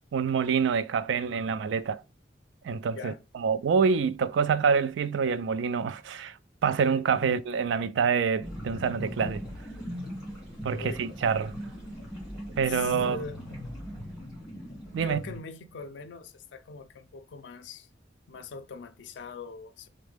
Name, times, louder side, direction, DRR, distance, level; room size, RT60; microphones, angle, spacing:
voice 1, 0.1-2.0 2.6-6.3 6.6-9.4 10.6-11.5 12.6-13.2 14.9-15.2, right 6 dB, 80° right, 0.3 m, -26 dB
sound 1, 8.4-15.4, equal, 5° right, 1.8 m, -39 dB
voice 2, 10.7-11.0 12.7-13.4 15.0-17.9 18.3-19.9, left 4 dB, 75° left, 0.4 m, -42 dB
3.7 x 2.1 x 3.3 m
head